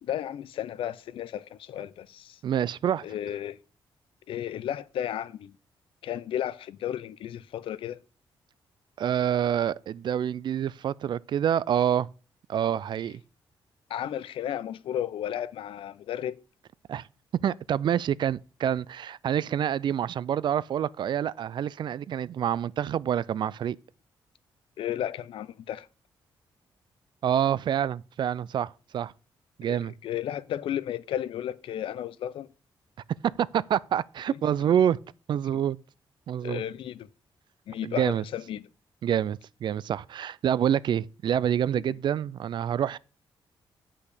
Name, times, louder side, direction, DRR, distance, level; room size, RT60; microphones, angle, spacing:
voice 1, 0.0-2.4 3.0-3.6 4.3-5.5 6.0-8.0 13.9-16.3 24.8-25.9 29.7-32.5 35.5-35.6 36.4-37.1 37.7-38.6 41.9-42.0, left 11 dB, 80° left, 0.5 m, -33 dB
voice 2, 2.4-3.0 9.0-12.1 12.5-13.2 16.9-17.1 17.3-23.8 27.2-29.1 29.6-29.9 33.4-35.0 35.3-35.8 36.3-36.6 37.8-38.2 39.0-43.0, right 9 dB, 60° right, 0.4 m, -27 dB
8.3 x 5.6 x 6.6 m
cardioid pair, 125°, 9 cm